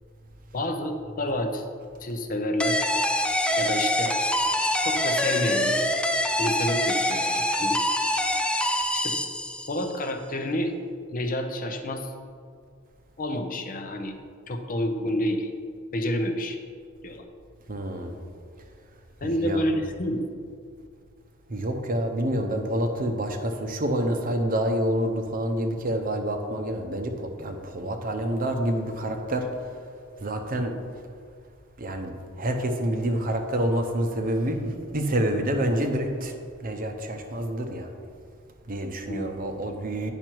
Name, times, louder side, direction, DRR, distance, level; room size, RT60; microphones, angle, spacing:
voice 1, 0.5-1.6 2.0-2.8 3.6-4.1 4.8-5.8 6.4-7.8 8.9-9.2 9.7-10.7 11.1-12.1 13.2-14.1 14.5-15.5 15.9-16.6 17.0-17.2 19.2-20.4 39.1-39.3, left 1 dB, 40° left, 5 dB, 0.7 m, -29 dB
sound 1, 2.6-9.9, left 1 dB, 5° left, 0.3 m, -25 dB
voice 2, 17.7-18.2 19.2-19.7 21.5-29.7 30.2-30.8 31.8-36.3 36.6-38.0 38.7-40.1, right 1 dB, 40° right, 5 dB, 0.7 m, -28 dB
9.0 x 5.8 x 4.5 m, 2.3 s
head